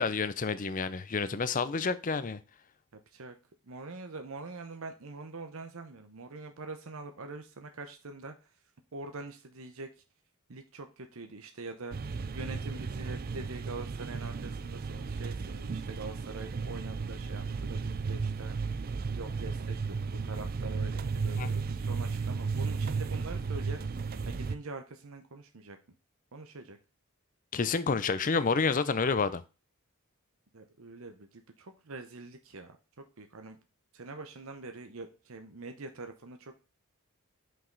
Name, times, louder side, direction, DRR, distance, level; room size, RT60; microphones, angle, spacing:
voice 1, 0.0-2.4 21.4-21.5 27.5-29.4, left 4 dB, 35° left, 0.5 m, -29 dB
voice 2, 2.9-3.4 3.6-8.3 8.9-9.9 10.5-12.0 12.3-18.7 19.1-24.0 24.3-25.8 26.3-26.8 30.5-33.6 33.9-36.5, right 3 dB, 65° right, 0.9 m, -44 dB
sound 1, 11.9-24.6, right 4 dB, 40° right, 0.4 m, -34 dB
5.8 x 5.3 x 3.8 m
head